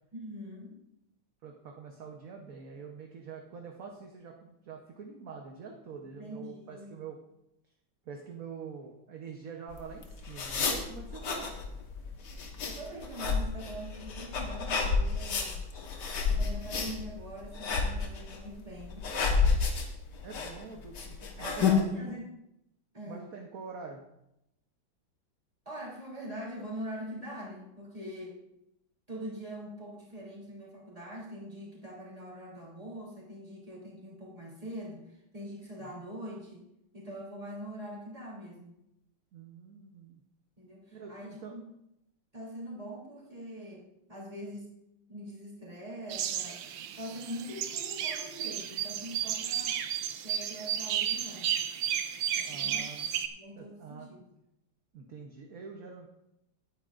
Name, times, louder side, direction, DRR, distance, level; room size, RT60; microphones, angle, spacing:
voice 1, 0.1-0.7 6.0-7.0 12.6-15.6 16.3-19.1 21.4-22.3 22.9-23.3 25.6-28.4 29.1-36.7 36.9-38.8 40.6-41.6 42.3-44.7 45.1-46.6 47.0-49.8 50.2-51.5 52.3-52.9 53.3-54.3, equal, 20° right, -4 dB, 3.0 m, -43 dB
voice 2, 1.4-7.2 8.1-11.5 20.2-22.0 23.0-24.0 35.8-36.0 39.3-40.2 40.9-41.5 52.5-53.3 53.6-54.1 54.9-56.1, right 5 dB, 55° right, 1 dB, 1.2 m, -45 dB
sound 1, 9.7-21.8, left 5 dB, 60° left, 1.8 m, -31 dB
sound 2, 46.1-53.3, right 10 dB, 80° right, 1.4 m, -33 dB
18.0 x 9.2 x 2.5 m, 0.85 s
omnidirectional pair, 2.1 m